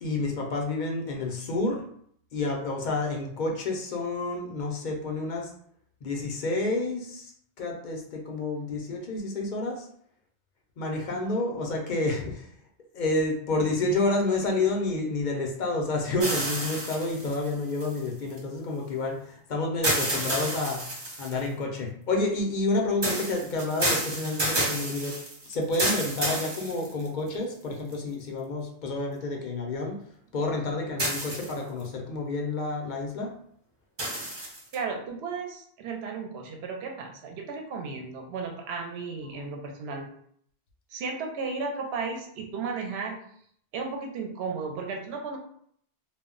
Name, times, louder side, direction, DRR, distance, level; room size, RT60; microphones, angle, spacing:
voice 1, 0.0-1.8 2.3-5.5 6.0-7.3 7.6-9.9 10.8-12.5 12.9-20.8 21.2-25.2 25.5-30.0 30.3-33.3, left 2 dB, 55° left, 1 dB, 0.6 m, -29 dB
sound 1, 16.2-18.4 19.8-21.5 23.0-27.3 27.9-28.0 31.0-31.8 34.0-34.8, right 1 dB, 30° right, 0.5 m, -30 dB
voice 2, 34.7-40.1 40.9-43.2 43.7-45.4, right 4 dB, 70° right, 2 dB, 0.8 m, -34 dB
2.2 x 2.0 x 3.6 m, 0.65 s
omnidirectional pair, 1.2 m